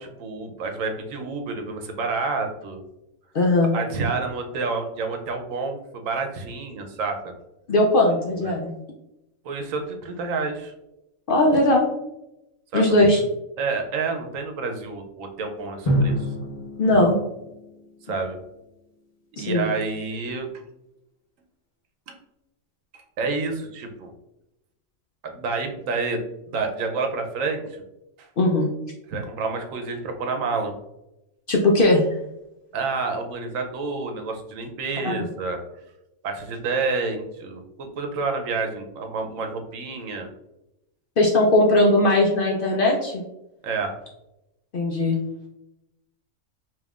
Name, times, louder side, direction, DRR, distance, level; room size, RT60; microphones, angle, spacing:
voice 1, 0.0-2.8 3.7-7.3 8.4-8.5 9.4-10.7 12.7-12.8 13.6-16.3 18.1-18.4 19.4-20.6 22.1-22.2 22.9-24.1 25.2-27.8 28.2-28.3 29.1-30.7 32.7-35.6 36.2-40.3 43.6-43.9, right 4 dB, 75° right, 5 dB, 1.0 m, -29 dB
voice 2, 3.3-3.7 7.7-8.7 11.3-11.9 12.7-13.2 16.8-17.2 19.4-19.7 28.4-28.7 31.5-32.0 35.2-35.3 41.2-43.2 44.7-45.2, left 1 dB, 55° left, -1 dB, 0.6 m, -19 dB
Drum, 15.9-18.5, equal, 30° left, 0.9 m, -27 dB
5.2 x 2.9 x 2.4 m, 0.89 s
omnidirectional pair, 1.4 m